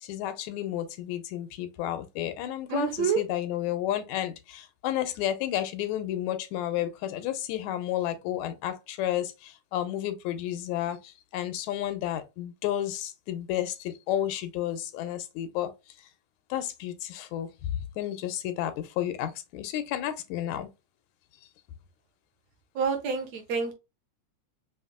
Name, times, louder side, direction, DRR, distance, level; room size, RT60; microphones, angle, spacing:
voice 1, 0.0-15.7 16.5-20.7, left 12 dB, 90° left, 2.0 m, -31 dB
voice 2, 2.7-3.2 22.8-23.7, right 5 dB, 70° right, 2.1 m, -27 dB
5.7 x 3.0 x 2.2 m
omnidirectional pair, 3.3 m